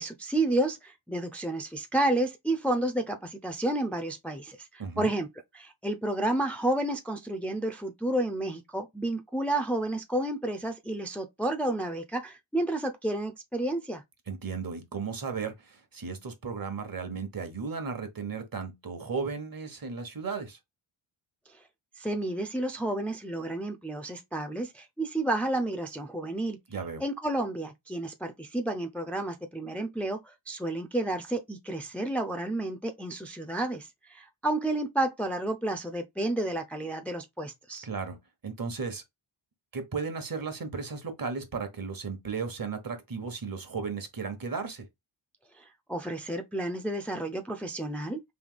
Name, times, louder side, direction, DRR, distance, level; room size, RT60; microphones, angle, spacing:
voice 1, 0.0-5.3 5.5-14.0 21.5-21.6 22.0-26.6 27.0-37.9 45.5-48.2, right 1 dB, 5° left, 0.6 m, -31 dB
voice 2, 4.8-5.1 14.3-20.6 26.7-27.0 37.8-38.2 38.4-39.0 39.7-44.8, right 5 dB, 45° right, 1.3 m, -35 dB
3.5 x 2.7 x 3.9 m
cardioid pair, 70°, 49 cm